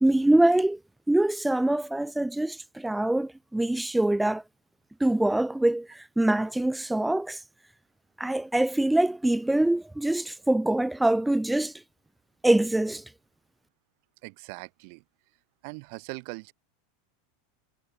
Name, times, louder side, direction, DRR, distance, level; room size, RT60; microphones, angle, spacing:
voice 1, 0.0-0.8 1.1-4.4 5.0-7.4 8.2-11.7 12.4-13.0, right 1 dB, 5° right, 0.7 m, -24 dB
voice 2, 14.2-15.0 15.6-16.5, right 36 dB, 60° right, 2.5 m, -40 dB
supercardioid pair, 120°, 0 cm